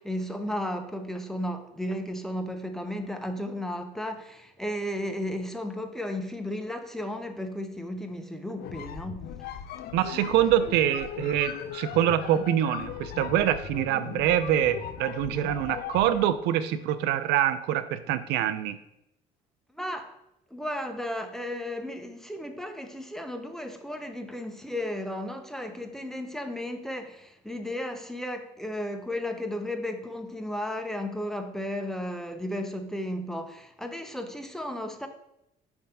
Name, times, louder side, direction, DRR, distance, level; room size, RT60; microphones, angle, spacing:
voice 1, 0.0-9.3 19.7-20.1 20.5-35.1, left 1 dB, ahead, 6 dB, 0.6 m, -34 dB
sound 1, 8.5-16.3, left 10 dB, 65° left, 0.4 m, -38 dB
voice 2, 9.9-18.8, right 11 dB, 85° right, 12 dB, 0.4 m, -25 dB
5.5 x 3.5 x 5.3 m, 0.83 s
cardioid pair, 110°, 17 cm